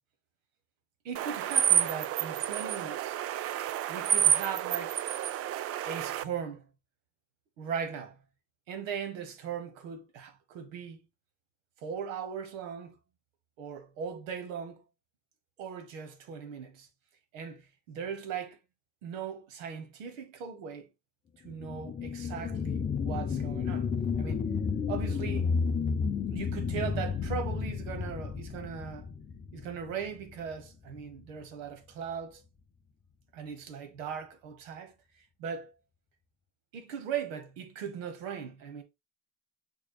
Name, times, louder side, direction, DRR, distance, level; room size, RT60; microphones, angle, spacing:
voice 1, 1.0-3.2 3.9-5.0 5.8-6.6 7.6-8.2 8.7-11.0 11.8-13.0 13.6-14.8 15.6-16.9 17.3-18.6 19.0-20.9 21.4-23.9 24.2-24.4 24.9-25.6 26.3-29.1 29.5-32.4 33.3-35.7 36.7-38.8, right 7 dB, 85° right, 1.2 m, -39 dB
sound 1, 1.2-6.2, right 10 dB, 40° right, 0.4 m, -29 dB
sound 2, 21.4-30.5 31.0-31.1, left 5 dB, 20° left, 0.4 m, -32 dB
6.3 x 3.6 x 2.2 m
supercardioid pair, 95°, 38 cm